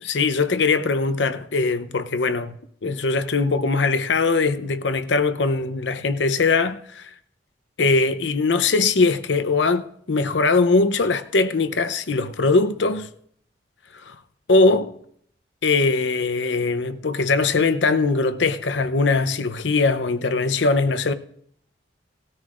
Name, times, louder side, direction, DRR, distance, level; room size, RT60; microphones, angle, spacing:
voice 1, 0.0-2.5 2.8-7.1 7.8-13.1 14.1-14.2 14.5-14.9 15.6-21.1, left 3 dB, 80° left, 0.7 m, -21 dB
19.0 x 13.5 x 2.5 m
head